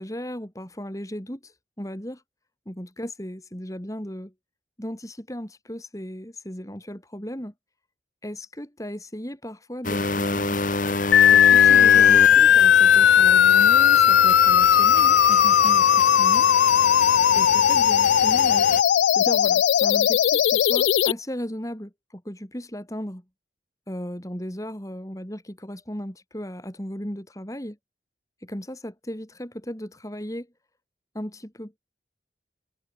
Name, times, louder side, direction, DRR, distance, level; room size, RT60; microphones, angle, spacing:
voice 1, 0.0-2.2 2.6-4.3 4.8-7.5 8.2-10.6 11.3-16.5 17.3-18.7 19.1-23.2 23.9-27.8 28.4-30.5 31.1-31.8, equal, 20° left, 3.2 m, -36 dB
sound 1, 9.8-18.8, left 3 dB, 45° left, 2.5 m, -29 dB
sound 2, 11.1-21.1, left 9 dB, 80° left, 0.3 m, -17 dB
head